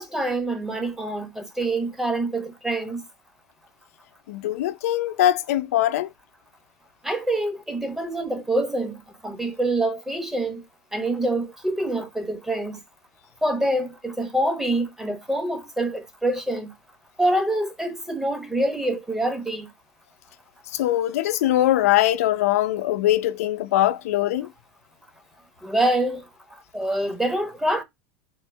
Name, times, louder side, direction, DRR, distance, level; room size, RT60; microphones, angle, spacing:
voice 1, 0.0-3.0 7.0-9.0 9.2-10.6 10.9-12.8 13.4-16.7 17.2-19.7 25.6-26.2 26.7-27.8, right 1 dB, 5° right, 1.0 m, -25 dB
voice 2, 4.3-6.1 20.7-24.5, left 13 dB, 85° left, 0.6 m, -22 dB
3.7 x 2.6 x 4.6 m
supercardioid pair, 130°, 8 cm